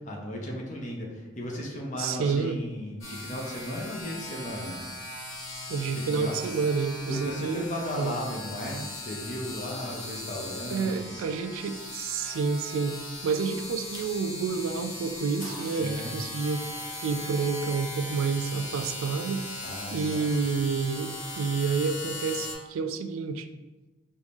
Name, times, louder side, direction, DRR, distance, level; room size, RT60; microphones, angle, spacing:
voice 1, 0.1-4.8 5.9-6.6 7.1-11.2 15.8-16.2 19.6-20.3, equal, 35° left, -1 dB, 0.7 m, -36 dB
voice 2, 2.0-2.6 5.7-7.6 8.0-8.2 10.7-16.7 17.0-19.5 19.9-23.5, right 5 dB, 75° right, 8 dB, 0.3 m, -29 dB
sound 1, 3.0-22.5, left 1 dB, 65° left, 1.2 m, -39 dB
4.7 x 2.6 x 3.5 m, 1.1 s
head